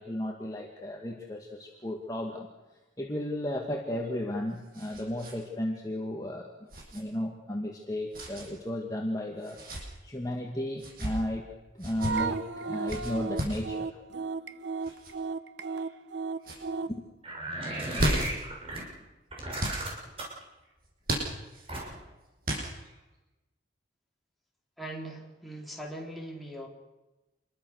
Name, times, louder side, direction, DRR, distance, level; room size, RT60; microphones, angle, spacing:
voice 1, 0.0-2.5 3.0-6.5 6.9-11.4 11.7-14.0 16.9-17.0, left 1 dB, 20° left, 0 dB, 2.2 m, -34 dB
sound 1, 4.0-5.4 5.7-5.8 6.7-7.0 8.1-8.5 9.4-9.8 10.7-11.1 11.8-12.1 12.9-13.6 14.8-15.1 15.8-16.1 16.4-16.6 17.7-18.5 19.6-19.8 21.0-21.7 22.4-23.0, right 1 dB, 50° right, 7.9 m, -34 dB
sound 2, 12.0-17.0, right 4 dB, 70° right, 1.0 m, -34 dB
sound 3, 17.2-18.8 19.3-20.4 21.7-22.1, right 1 dB, 30° right, 6.3 m, -35 dB
voice 2, 24.8-26.7, right 1 dB, ahead, -2 dB, 4.2 m, -40 dB
28.0 x 22.0 x 6.7 m, 1.1 s
head